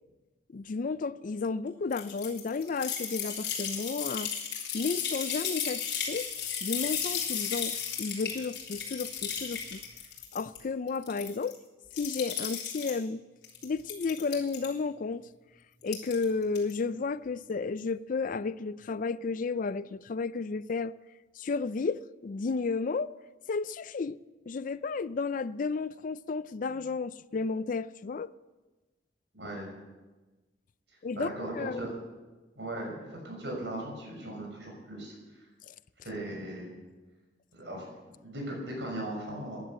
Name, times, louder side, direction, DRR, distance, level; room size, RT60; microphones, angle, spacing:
voice 1, 0.5-4.3 4.7-6.3 6.6-9.8 10.3-11.6 11.9-13.2 13.6-15.2 15.8-20.9 21.4-23.1 23.5-24.2 24.5-28.3 31.0-31.3 31.6-31.8 35.7-35.8, left 4 dB, 50° left, 0.4 m, -32 dB
sound 1, 1.9-10.6 10.9-11.5 11.9-13.0 13.4-14.7 15.8-16.2 16.5-16.7, left 7 dB, 70° left, 3.7 m, -34 dB
voice 2, 29.3-29.7 31.1-31.9 32.5-35.4 36.0-36.7 37.5-39.6, right 1 dB, 80° right, 6.3 m, -38 dB
14.5 x 11.0 x 7.7 m
head